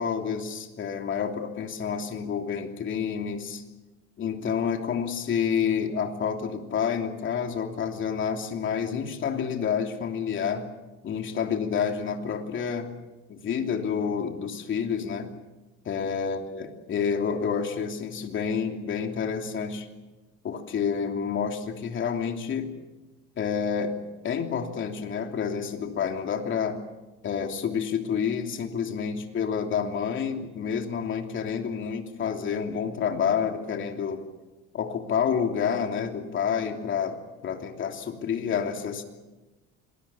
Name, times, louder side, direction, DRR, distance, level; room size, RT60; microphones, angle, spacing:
voice 1, 0.0-3.6 4.2-10.7 11.0-12.9 13.3-15.3 15.8-19.9 20.4-22.7 23.4-24.0 24.2-26.8 27.2-34.2 34.7-39.0, left 7 dB, 40° left, 4 dB, 3.1 m, -29 dB
27.0 x 20.5 x 7.2 m, 1.1 s
cardioid pair, 130°, 29 cm